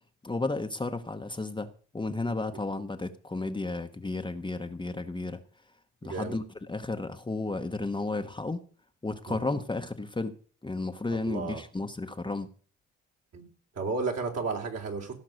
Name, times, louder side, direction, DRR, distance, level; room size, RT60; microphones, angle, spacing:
voice 1, 0.2-1.7 1.9-5.4 6.0-6.4 6.7-8.6 9.0-10.3 10.6-12.5, left 2 dB, 15° left, 1.0 m, -33 dB
voice 2, 6.0-6.4 9.3-9.4 11.3-11.6 13.3-13.5 13.7-15.1, right 4 dB, 55° right, 3.2 m, -32 dB
16.5 x 5.8 x 6.4 m
supercardioid pair, 75°, 31 cm